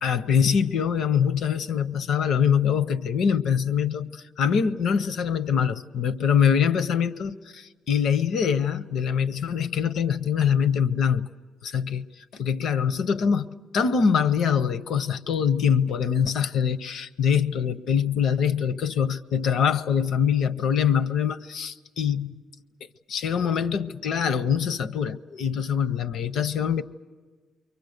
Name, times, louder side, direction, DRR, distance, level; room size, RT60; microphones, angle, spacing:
voice 1, 0.0-11.3 11.6-12.1 12.4-22.3 23.1-26.8, left 7 dB, 70° left, 13 dB, 0.7 m, -24 dB
29.0 x 23.5 x 6.6 m, 1.4 s
cardioid pair, 90°, 0 cm